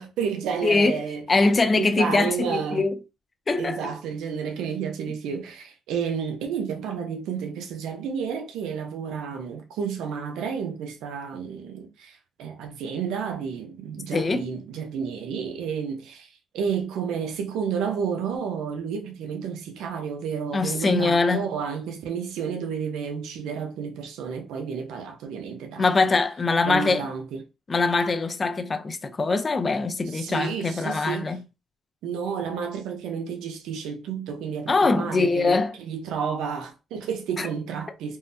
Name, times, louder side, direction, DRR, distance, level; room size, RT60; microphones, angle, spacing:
voice 1, 0.0-1.2 1.7-2.9 3.6-25.9 26.6-27.4 30.1-31.4 32.0-38.2, right 6 dB, 85° right, 0.6 m, -31 dB
voice 2, 0.6-1.0 1.3-3.0 3.5-3.9 14.1-14.5 20.5-21.5 25.8-27.1 27.7-31.4 34.7-35.7 37.4-37.5, left 3 dB, 30° left, 0.5 m, -23 dB
3.7 x 2.1 x 2.6 m
cardioid pair, 90°, 0 cm